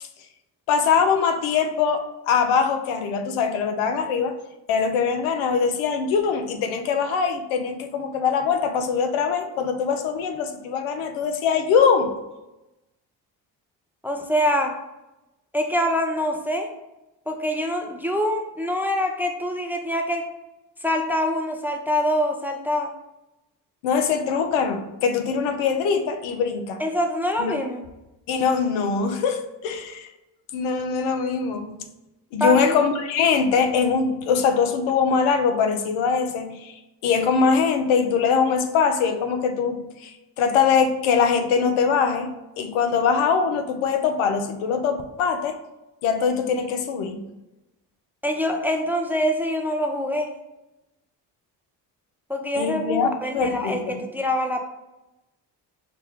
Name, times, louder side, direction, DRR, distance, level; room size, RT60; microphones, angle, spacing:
voice 1, 0.7-4.3 4.7-12.1 23.8-26.8 27.4-27.6 28.3-30.1 30.5-31.8 32.3-42.3 42.6-45.6 46.0-47.3 52.6-54.0, left 6 dB, 75° left, 6 dB, 0.7 m, -22 dB
voice 2, 14.0-14.7 15.5-16.7 17.3-20.2 20.8-22.9 26.8-27.8 32.4-32.7 48.2-50.3 52.3-54.6, equal, 5° right, 2 dB, 0.5 m, -24 dB
4.8 x 2.2 x 3.5 m, 0.97 s
hypercardioid pair, 50°, 49 cm